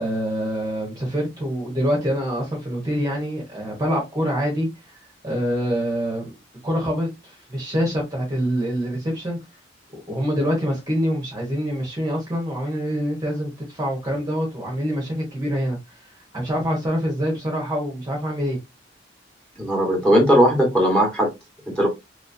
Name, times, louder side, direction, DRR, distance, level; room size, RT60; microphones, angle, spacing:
voice 1, 0.0-4.7 5.2-6.3 6.6-9.4 10.1-16.1 16.3-18.6, equal, 20° right, 1.1 m, -25 dB
voice 2, 19.6-21.3 21.8-21.9, equal, 5° left, 1.4 m, -18 dB
3.1 x 3.0 x 2.6 m
head